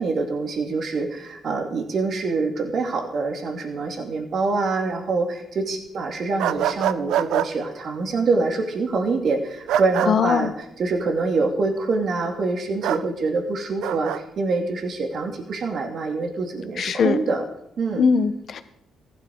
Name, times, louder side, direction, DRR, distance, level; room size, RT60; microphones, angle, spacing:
voice 1, 0.0-10.5 10.8-17.4 17.8-18.1, right 3 dB, 55° right, 3 dB, 2.5 m, -25 dB
sound 1, 6.4-7.5 9.7-10.1 12.8-13.0 13.8-14.2, right 10 dB, 85° right, 0.6 m, -24 dB
voice 2, 10.1-10.5 16.8-17.2 18.0-18.6, left 6 dB, 55° left, 10 dB, 1.3 m, -20 dB
15.0 x 12.0 x 4.8 m, 0.79 s
cardioid pair, 90°, 0 cm